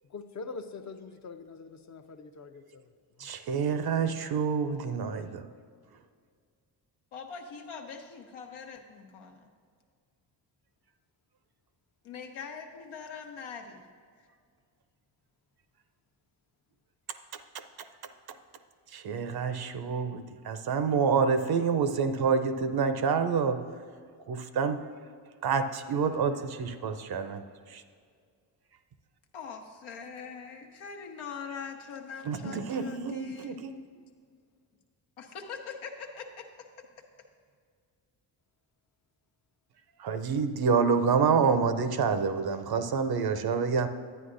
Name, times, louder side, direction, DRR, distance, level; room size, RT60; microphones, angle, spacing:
voice 1, 0.1-2.9 3.4-4.5, left 4 dB, 35° left, 8 dB, 0.7 m, -44 dB
voice 2, 3.2-5.5 18.9-23.6 24.3-24.8 25.4-27.4 27.7-27.8 32.3-33.7 40.0-43.9, right 5 dB, 50° right, 10 dB, 0.6 m, -27 dB
voice 3, 7.1-9.5 12.0-13.8 14.2-14.3 29.3-33.6 35.2-36.5, left 6 dB, 75° left, 3 dB, 1.0 m, -42 dB
9.9 x 9.2 x 2.6 m, 2.1 s
supercardioid pair, 55°, 48 cm